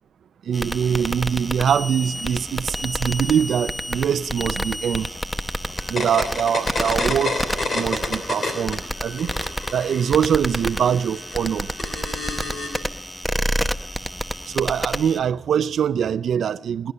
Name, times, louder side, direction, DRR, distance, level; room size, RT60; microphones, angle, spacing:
sound 1, 0.5-15.2, equal, ahead, 0.8 m, -29 dB
voice 1, 0.5-5.1 5.9-7.4 7.7-9.3 9.7-11.7 14.5-16.9, right 8 dB, 85° right, 0.4 m, -23 dB
sound 2, 0.9-1.2 1.5-2.3 2.5-3.5 3.8-5.2 5.6-5.8 6.1-6.4 6.9-7.6 7.8-8.2, left 1 dB, 35° left, 5.7 m, -48 dB
sound 3, 5.8-8.8 9.1-12.8, left 3 dB, 65° left, 3.4 m, -29 dB
19.0 x 11.0 x 5.5 m
cardioid pair, 55°, 0 cm